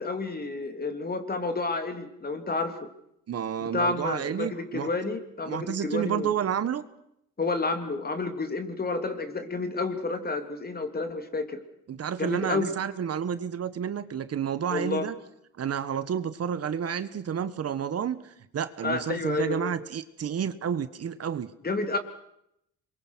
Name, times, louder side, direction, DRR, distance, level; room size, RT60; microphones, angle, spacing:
voice 1, 0.0-2.8 3.6-6.3 7.4-11.6 12.2-12.7 14.7-15.1 18.8-19.7 21.6-22.0, left 3 dB, 30° left, 8 dB, 3.4 m, -30 dB
voice 2, 3.3-4.9 5.5-6.8 11.9-15.1 15.6-21.5, right 8 dB, 55° right, 12 dB, 1.5 m, -30 dB
26.0 x 23.0 x 6.3 m, 0.76 s
cardioid pair, 90°, 30 cm